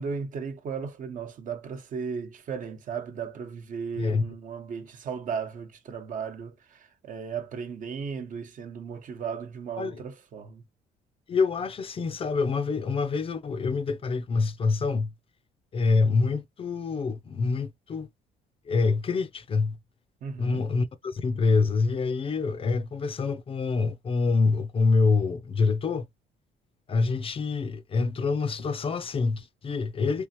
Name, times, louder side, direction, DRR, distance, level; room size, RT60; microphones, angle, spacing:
voice 1, 0.0-10.6 20.2-20.6, right 6 dB, 50° right, 1.0 m, -36 dB
voice 2, 4.0-4.3 9.8-10.0 11.3-15.1 15.7-18.1 18.7-19.8 20.4-26.1 26.9-30.3, left 4 dB, 35° left, 0.5 m, -26 dB
3.5 x 3.3 x 3.0 m
cardioid pair, 110°, 17 cm